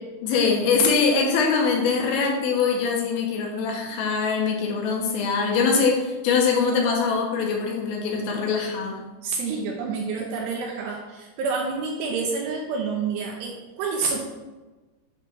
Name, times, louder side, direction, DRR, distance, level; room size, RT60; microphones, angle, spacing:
voice 1, 0.2-9.0, left 5 dB, 70° left, 0 dB, 2.4 m, -23 dB
voice 2, 9.2-14.3, right 4 dB, 80° right, 0 dB, 2.6 m, -28 dB
8.7 x 3.2 x 6.2 m, 1.2 s
omnidirectional pair, 5.8 m